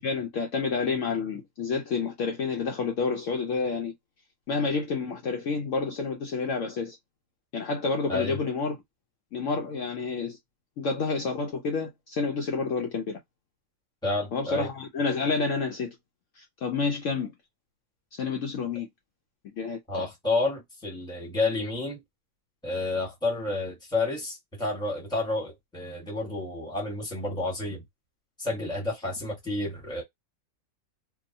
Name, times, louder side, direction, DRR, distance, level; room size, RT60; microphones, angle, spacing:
voice 1, 0.0-3.9 4.5-7.0 7.5-8.8 9.3-10.4 10.8-13.2 14.3-15.9 16.4-17.3 18.1-18.9 19.4-19.8, left 4 dB, 65° left, 0.9 m, -29 dB
voice 2, 14.0-14.7 19.9-22.0 22.6-27.8 28.4-30.0, left 2 dB, 5° left, 1.1 m, -30 dB
2.8 x 2.3 x 2.6 m
omnidirectional pair, 1.6 m